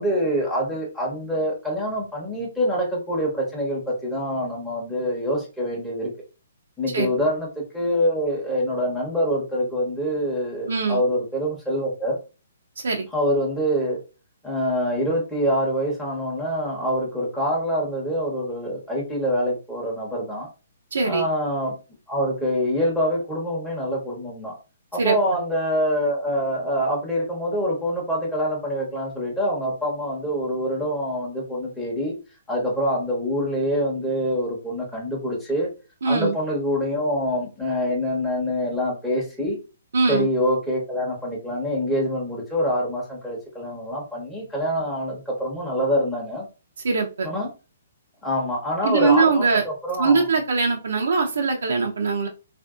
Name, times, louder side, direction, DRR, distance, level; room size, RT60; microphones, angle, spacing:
voice 1, 0.0-6.1 6.8-7.5 7.7-12.2 13.1-14.0 14.4-20.5 21.0-21.7 22.1-24.6 24.9-32.1 32.5-35.7 36.1-39.6 40.1-46.5 47.2-47.5 48.2-50.3, equal, 5° left, -5 dB, 0.8 m, -25 dB
voice 2, 10.7-11.0 12.8-13.1 20.9-21.2 25.0-25.2 36.0-36.4 39.9-40.3 46.8-47.3 48.8-49.6 50.0-52.3, right 4 dB, 80° right, 1 dB, 0.5 m, -21 dB
3.5 x 2.5 x 2.3 m, 0.32 s
hypercardioid pair, 155°, 0 cm